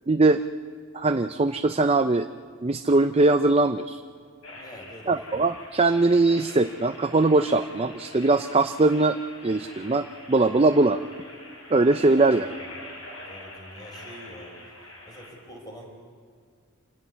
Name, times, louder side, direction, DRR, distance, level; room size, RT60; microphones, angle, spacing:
voice 1, 0.1-0.4 0.9-2.3 2.6-4.0 5.1-9.2 9.4-11.0 11.7-12.5, right 2 dB, 30° right, 8 dB, 0.5 m, -21 dB
sound 1, 4.4-15.3, left 1 dB, 80° left, 7.7 m, -44 dB
voice 2, 4.5-5.4 13.2-14.5 15.1-15.9, equal, 20° left, 0 dB, 5.7 m, -45 dB
27.0 x 15.0 x 9.7 m, 2.1 s
head